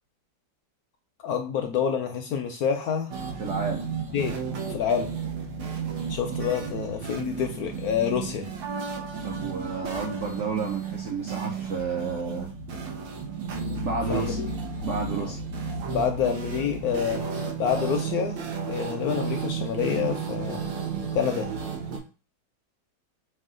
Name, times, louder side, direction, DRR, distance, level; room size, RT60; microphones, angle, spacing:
voice 1, 1.2-3.1 4.1-5.2 6.1-8.5 14.1-14.5 15.2-15.3 15.9-17.2 17.6-18.4 18.7-20.7 21.1-21.5, left 7 dB, 70° left, 5 dB, 0.9 m, -28 dB
sound 1, 3.1-22.0, right 5 dB, 85° right, 1.7 m, -33 dB
voice 2, 3.4-3.8 9.2-12.5 13.8-14.4 14.8-15.4, right 4 dB, 65° right, 0 dB, 0.7 m, -31 dB
5.5 x 2.3 x 3.7 m, 0.35 s
omnidirectional pair, 1.9 m